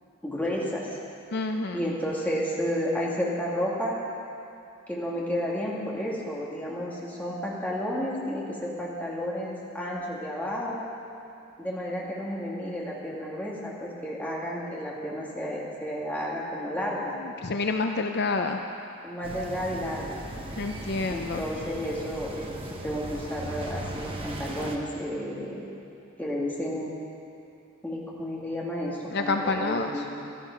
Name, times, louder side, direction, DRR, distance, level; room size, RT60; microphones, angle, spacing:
voice 1, 0.2-1.0 1.7-4.0 4.9-10.8 11.6-17.2 19.0-20.2 21.1-22.5 22.8-25.7 26.2-26.9 27.8-30.1, equal, 5° left, -5 dB, 2.2 m, -31 dB
voice 2, 1.3-1.8 17.1-18.6 20.6-21.4 29.1-30.0, left 3 dB, 50° left, 4 dB, 0.5 m, -28 dB
sound 1, 19.2-24.8, right 1 dB, 25° right, 1.1 m, -38 dB
14.5 x 12.5 x 5.8 m, 2.7 s
head